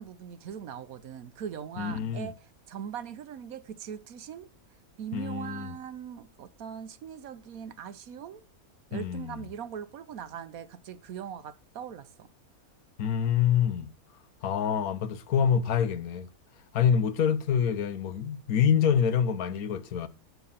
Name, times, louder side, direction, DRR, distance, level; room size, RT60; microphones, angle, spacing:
voice 1, 0.0-2.3 2.7-4.5 5.0-8.4 8.9-12.3, right 8 dB, 75° right, 1.3 m, -40 dB
voice 2, 1.8-2.3 5.1-5.8 8.9-9.4 13.0-13.9 14.4-16.3 16.7-20.1, left 8 dB, 80° left, 1.3 m, -26 dB
9.3 x 5.8 x 5.6 m
omnidirectional pair, 1.5 m